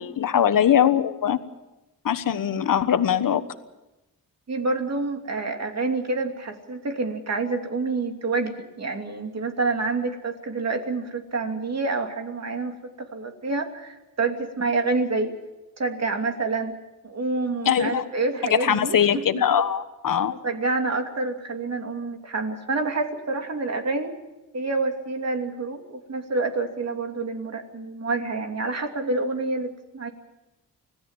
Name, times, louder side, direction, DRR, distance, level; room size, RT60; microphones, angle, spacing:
voice 1, 0.0-1.4 2.0-3.4 17.6-18.0 18.5-20.3, left 9 dB, 65° left, 11 dB, 1.4 m, -21 dB
voice 2, 4.5-15.3 15.8-16.7 17.0-19.0 19.4-19.5 20.3-24.1 24.5-30.1, right 3 dB, 45° right, 4 dB, 2.8 m, -28 dB
25.5 x 17.0 x 7.4 m, 1.0 s
cardioid pair, 90°, 36 cm